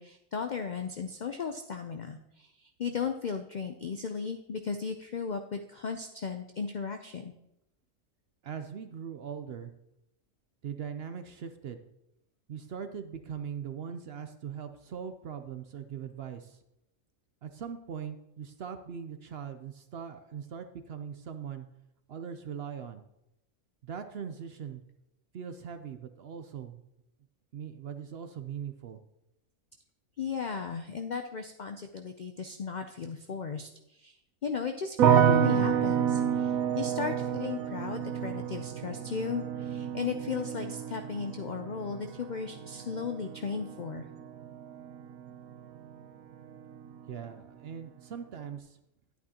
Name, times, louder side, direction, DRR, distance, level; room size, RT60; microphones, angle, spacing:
voice 1, 0.0-7.3 30.2-44.0, left 6 dB, 70° left, 7 dB, 0.4 m, -36 dB
voice 2, 8.4-9.7 10.6-11.8 12.5-16.6 17.4-21.7 22.1-23.0 23.8-24.8 25.3-26.8 27.5-29.0 47.1-48.8, right 7 dB, 60° right, 8 dB, 0.7 m, -40 dB
sound 1, 35.0-46.1 46.3-47.1, right 8 dB, 90° right, 1.1 m, -29 dB
11.0 x 9.3 x 2.9 m, 0.85 s
omnidirectional pair, 1.4 m